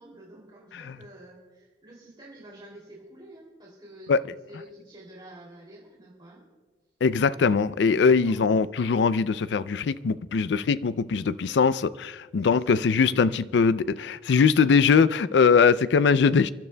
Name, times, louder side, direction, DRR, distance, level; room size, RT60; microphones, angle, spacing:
voice 1, 0.0-6.4 8.0-8.4 11.4-11.6 12.4-12.8, right 1 dB, 25° right, 2.7 m, -49 dB
voice 2, 7.0-16.5, left 5 dB, 75° left, 0.4 m, -21 dB
29.5 x 12.0 x 2.2 m
head